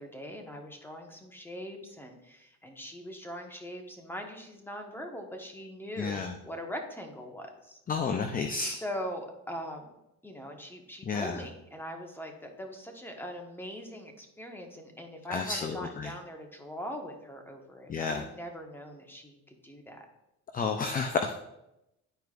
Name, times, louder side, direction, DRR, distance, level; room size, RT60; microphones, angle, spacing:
voice 1, 0.0-7.8 8.8-9.9 10.2-20.1, equal, 5° left, 3 dB, 1.3 m, -41 dB
voice 2, 6.0-6.3 7.9-8.8 11.1-11.4 15.3-16.1 17.9-18.2 20.5-21.4, left 4 dB, 25° left, 5 dB, 0.6 m, -31 dB
11.5 x 4.6 x 2.5 m, 0.88 s
cardioid pair, 100°, 33 cm